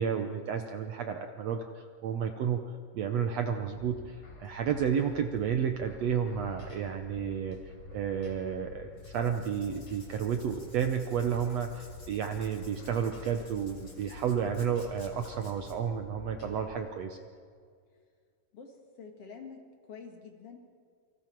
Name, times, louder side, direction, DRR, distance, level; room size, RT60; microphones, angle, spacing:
voice 1, 0.0-2.6 2.9-17.2, right 7 dB, 70° right, 6 dB, 1.7 m, -31 dB
sound 1, 3.5-16.6, left 4 dB, 75° left, 5.4 m, -49 dB
Writing, 8.9-15.7, left 2 dB, 25° left, 2.9 m, -56 dB
voice 2, 18.5-20.9, left 5 dB, 50° left, 3 dB, 2.6 m, -48 dB
28.5 x 25.0 x 4.6 m, 2.2 s
omnidirectional pair, 3.8 m